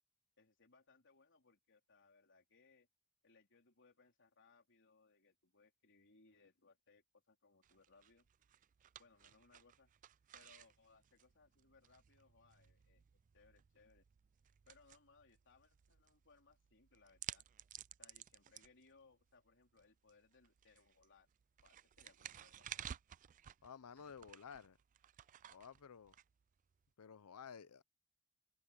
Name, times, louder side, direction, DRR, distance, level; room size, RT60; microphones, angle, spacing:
voice 1, 0.4-2.9 3.2-8.3 9.0-9.9 10.3-14.0 14.7-17.5 18.0-21.3 21.6-22.9, left 4 dB, 55° left, 3.9 m, -69 dB
sound 1, 7.6-26.9, right 10 dB, 35° right, 0.3 m, -56 dB
voice 2, 23.6-24.8 25.5-26.1 27.0-27.8, left 6 dB, 85° left, 0.6 m, -54 dB
open air
head